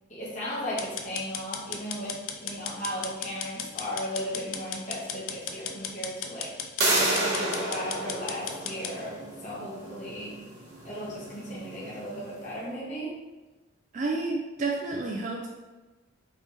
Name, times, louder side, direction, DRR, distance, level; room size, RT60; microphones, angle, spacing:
voice 1, 0.1-6.5 6.9-10.3 10.8-13.1, equal, 35° left, -8 dB, 0.9 m, -36 dB
sound 1, 0.8-8.9, left 7 dB, 85° left, 0.4 m, -36 dB
sound 2, 6.8-12.4, right 2 dB, 55° right, 0.9 m, -31 dB
voice 2, 13.9-15.5, right 3 dB, 35° right, -1 dB, 0.3 m, -30 dB
3.3 x 3.2 x 2.8 m, 1.2 s
head